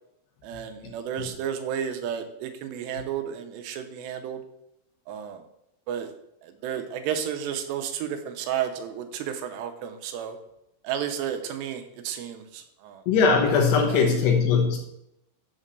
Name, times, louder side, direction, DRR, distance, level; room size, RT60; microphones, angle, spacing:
voice 1, 0.4-4.4 5.1-5.4 5.9-6.1 6.4-10.4 10.8-13.0 13.9-14.2, right 9 dB, 80° right, 7 dB, 2.9 m, -32 dB
voice 2, 13.1-14.8, left 5 dB, 75° left, 2 dB, 3.3 m, -20 dB
7.4 x 4.2 x 6.5 m, 0.81 s
omnidirectional pair, 5.0 m